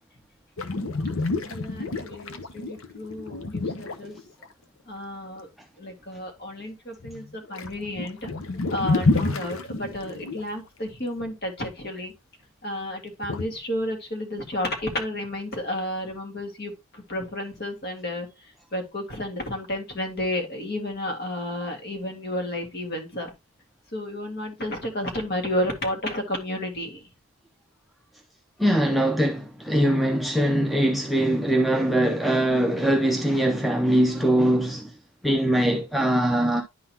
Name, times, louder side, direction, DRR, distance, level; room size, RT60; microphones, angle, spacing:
sound 1, 0.6-4.5 7.0-7.2 7.5-10.5 13.2-13.4, left 3 dB, 70° left, 0.8 m, -28 dB
voice 1, 1.5-4.2 4.9-5.5 5.8-8.3 8.7-12.1 12.6-23.3 23.9-27.1, left 1 dB, 45° left, 1.8 m, -32 dB
voice 2, 28.6-34.9 35.2-36.6, right 1 dB, ahead, 0.5 m, -22 dB
10.5 x 3.9 x 2.8 m
head